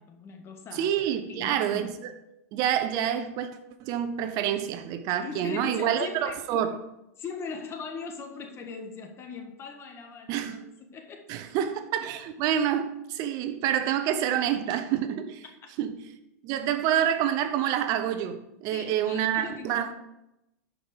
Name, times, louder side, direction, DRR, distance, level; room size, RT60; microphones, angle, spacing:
voice 1, 0.0-0.9 1.3-1.9 5.2-6.4 7.2-11.3 18.7-19.9, left 5 dB, 30° left, 1.5 m, -40 dB
voice 2, 0.7-2.1 2.5-3.5 3.8-6.7 10.3-10.6 11.3-15.4 15.8-15.9 16.4-19.9, right 10 dB, 50° right, 0.9 m, -27 dB
11.0 x 5.4 x 5.1 m
hypercardioid pair, 120°, 8 cm